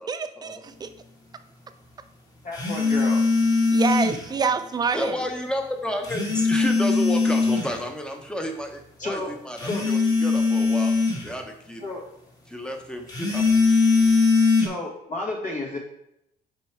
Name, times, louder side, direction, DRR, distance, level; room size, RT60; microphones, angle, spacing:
voice 1, 0.1-0.9 3.7-5.2, right 5 dB, 25° right, 10 dB, 0.5 m, -26 dB
voice 2, 2.4-3.2 9.0-9.3 9.7-9.8 11.8-12.0 14.6-15.8, left 2 dB, 50° left, -2 dB, 1.6 m, -31 dB
sound 1, 2.5-4.3 6.0-7.8 9.6-11.3 13.1-14.7, left 4 dB, 20° left, 1.5 m, -21 dB
voice 3, 4.9-10.9 11.2-11.8 12.5-13.6, equal, 5° left, 4 dB, 1.0 m, -31 dB
5.2 x 4.6 x 4.5 m, 0.80 s
cardioid pair, 110°, 17 cm